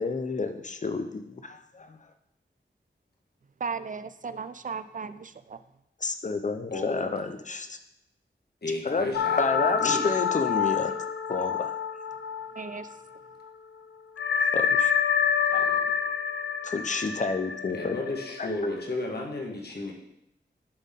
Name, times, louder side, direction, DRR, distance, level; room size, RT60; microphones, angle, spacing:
voice 1, 0.0-2.0 6.0-7.8 8.8-9.1 9.4-10.9 11.3-11.7 14.5-14.9 15.5-15.7 16.6-17.9 18.4-18.5, left 4 dB, 40° left, 8 dB, 0.6 m, -30 dB
voice 2, 3.6-5.6 12.5-13.0, right 5 dB, 45° right, 12 dB, 0.4 m, -36 dB
voice 3, 6.7-7.2 8.6-10.1 15.5-15.9 17.7-19.9, left 2 dB, 55° left, 0 dB, 1.5 m, -33 dB
sound 1, 9.1-13.2 13.4-13.5 14.2-18.8, left 7 dB, 85° left, 0.4 m, -27 dB
11.0 x 3.8 x 3.6 m, 0.81 s
wide cardioid pair, 75°, 20 cm